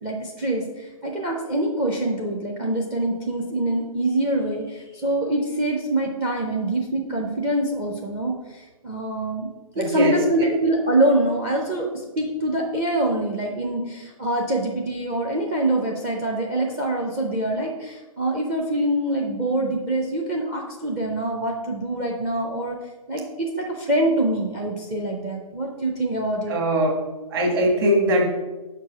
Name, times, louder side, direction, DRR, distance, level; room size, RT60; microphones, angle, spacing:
voice 1, 0.0-9.5 9.7-22.8 23.1-26.6, right 1 dB, 15° right, 0 dB, 0.5 m, -25 dB
voice 2, 9.8-10.2 26.5-26.9 27.3-28.3, equal, 40° right, 0 dB, 1.8 m, -20 dB
5.5 x 4.6 x 5.9 m, 1.1 s
hypercardioid pair, 150°, 19 cm